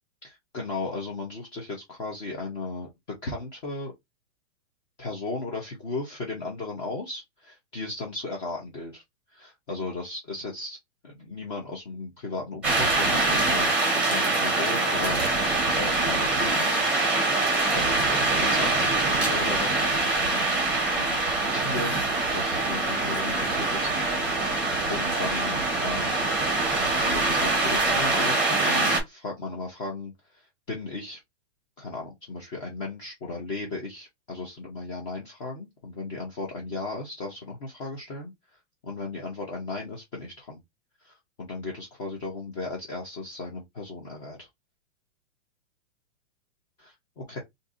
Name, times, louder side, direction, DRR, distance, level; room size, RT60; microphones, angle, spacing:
voice 1, 0.2-3.9 5.0-9.0 9.3-10.8 11.0-13.8 14.0-16.8 17.7-19.9 20.2-20.6 21.0-21.3 21.5-21.9 22.3-24.5 24.9-26.2 26.8-31.2 31.8-38.3 38.8-40.6 41.0-44.5 46.8-47.4, left 3 dB, 25° left, 0.8 m, -36 dB
sound 1, 12.6-29.0, right 2 dB, 5° right, 1.0 m, -24 dB
2.6 x 2.6 x 3.7 m
hypercardioid pair, 165°, 36 cm